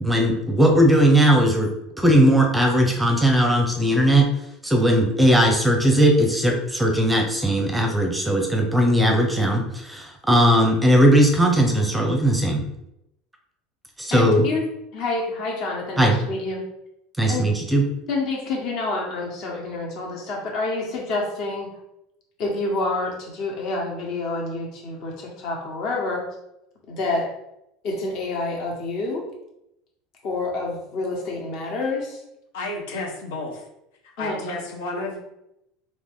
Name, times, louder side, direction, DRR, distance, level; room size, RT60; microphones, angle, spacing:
voice 1, 0.0-4.3 4.6-12.6 14.0-14.5 16.0-16.2 17.2-17.8, right 1 dB, 5° right, 2 dB, 0.6 m, -18 dB
voice 2, 14.1-14.6 14.9-16.6 17.3-17.4 18.1-21.7 22.4-26.2 26.9-27.3 27.8-29.2 30.2-32.2 34.2-34.4, left 3 dB, 55° left, -1 dB, 1.5 m, -28 dB
voice 3, 32.5-33.6 34.2-35.2, left 2 dB, 85° left, 0 dB, 1.1 m, -31 dB
4.1 x 2.9 x 3.6 m, 0.83 s
supercardioid pair, 130°, 0 cm